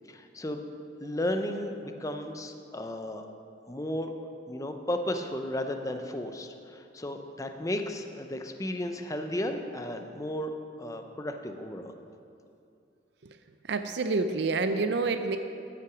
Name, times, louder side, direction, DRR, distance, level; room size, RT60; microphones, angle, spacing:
voice 1, 0.1-0.6 1.0-3.3 3.7-10.5 10.8-11.9, left 1 dB, 20° left, 6 dB, 0.6 m, -34 dB
voice 2, 13.6-15.4, right 3 dB, 65° right, 8 dB, 0.5 m, -28 dB
13.0 x 5.9 x 6.0 m, 2.6 s
head